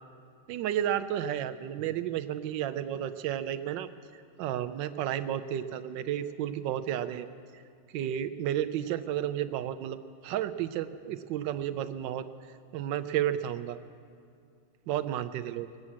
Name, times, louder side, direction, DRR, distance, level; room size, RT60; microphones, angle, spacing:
voice 1, 0.5-3.9 4.4-7.3 7.5-7.6 7.9-12.3 12.7-13.8 14.9-15.7, right 11 dB, 90° right, 10 dB, 1.3 m, -32 dB
20.5 x 7.6 x 8.4 m, 2.3 s
omnidirectional pair, 1.9 m